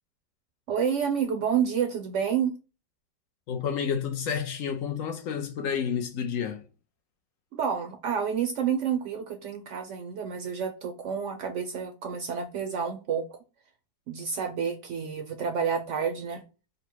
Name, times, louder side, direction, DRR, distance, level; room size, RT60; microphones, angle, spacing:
voice 1, 0.7-2.5 7.5-13.4 14.1-16.4, right 7 dB, 70° right, 0.7 m, -29 dB
voice 2, 3.5-6.6, left 7 dB, 65° left, 0.9 m, -30 dB
4.0 x 2.1 x 4.4 m
omnidirectional pair, 1.6 m